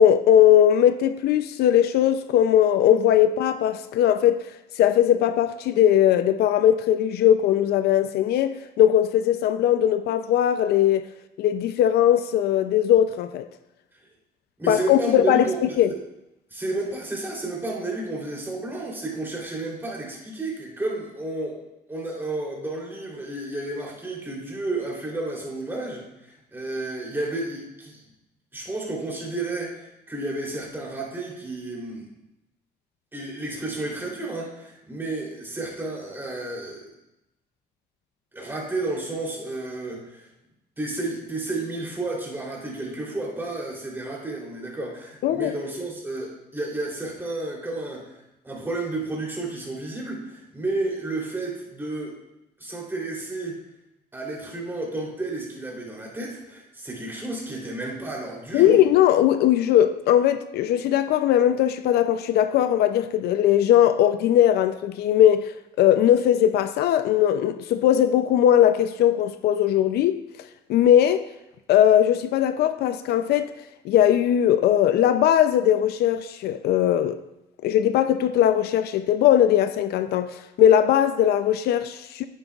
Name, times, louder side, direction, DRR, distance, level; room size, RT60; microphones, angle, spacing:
voice 1, 0.0-4.4 4.8-11.1 11.4-13.5 14.7-15.5 15.8-15.9 45.2-45.5 58.5-70.2 70.7-71.3 71.7-73.5 73.8-77.2 77.6-82.3, left 10 dB, 70° left, 0.5 m, -19 dB
voice 2, 14.6-16.0 16.5-21.6 21.9-28.0 28.5-32.1 33.1-36.8 38.3-40.3 40.8-48.1 48.4-52.2 52.6-53.6 54.1-58.8, right 2 dB, 15° right, 3.2 m, -31 dB
10.5 x 9.1 x 2.4 m
cardioid pair, 110°, 17 cm